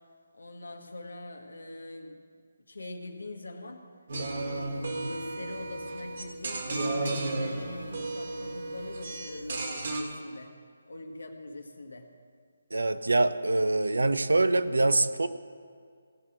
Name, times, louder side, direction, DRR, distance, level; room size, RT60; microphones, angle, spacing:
voice 1, 0.3-2.2 2.7-3.9 4.7-10.6 10.9-12.1, left 2 dB, 85° left, 5 dB, 1.5 m, -43 dB
sound 1, 4.1-10.0, right 2 dB, 55° right, 1.9 m, -33 dB
voice 2, 12.7-15.3, right 2 dB, 85° right, 12 dB, 0.7 m, -24 dB
17.0 x 6.0 x 6.2 m, 2.1 s
figure-of-eight pair, 155°, 0 cm